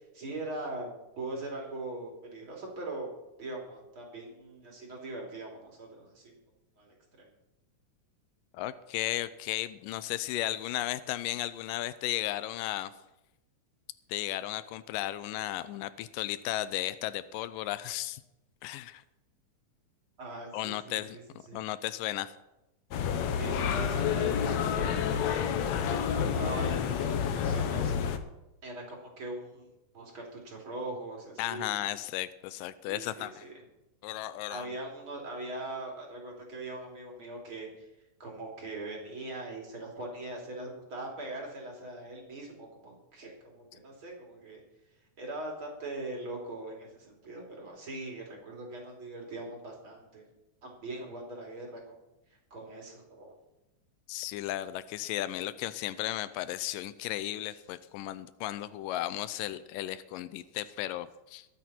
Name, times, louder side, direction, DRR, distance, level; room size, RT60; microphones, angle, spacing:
voice 1, 0.1-3.1 3.4-6.4 6.8-7.3 20.2-21.6 23.4-24.9 25.6-28.0 28.6-29.7 29.9-31.9 32.9-33.6 34.5-37.9 38.2-44.6 45.2-50.2 50.6-51.9 52.5-53.3, right 2 dB, 40° right, -1 dB, 3.9 m, -41 dB
voice 2, 8.5-12.9 14.1-18.2 18.6-19.0 20.5-21.2 21.5-22.3 31.4-33.4 34.0-34.7 54.1-61.5, left 14 dB, 90° left, 14 dB, 2.3 m, -35 dB
sound 1, 22.9-28.2, left 7 dB, 70° left, 1.9 m, -29 dB
22.0 x 8.4 x 4.4 m, 0.94 s
omnidirectional pair, 3.8 m